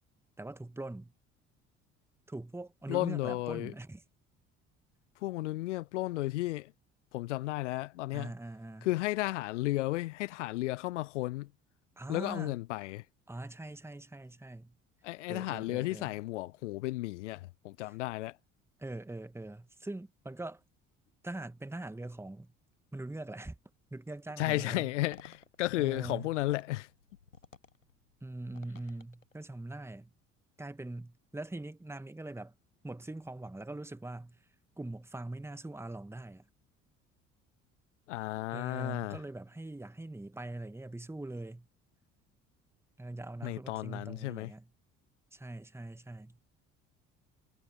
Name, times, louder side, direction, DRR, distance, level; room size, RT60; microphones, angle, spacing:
voice 1, 0.4-1.1 2.3-4.0 8.1-8.9 12.0-12.5 13.3-14.7 15.3-16.1 18.8-20.6 21.2-22.5 22.9-23.6 23.9-24.9 25.8-26.3 28.2-30.1 30.6-32.5 32.8-34.4 34.8-36.5 38.5-41.7 43.0-44.7 45.3-46.4, right 2 dB, 5° right, 1.9 m, -42 dB
voice 2, 2.9-3.7 5.2-6.7 7.1-8.3 8.8-11.5 12.1-13.0 15.0-18.4 24.4-26.9 38.1-39.2 43.4-44.5, left 18 dB, 65° left, 0.9 m, -33 dB
sound 1, 25.0-29.7, left 4 dB, 90° left, 1.2 m, -57 dB
figure-of-eight pair, 55°, 38 cm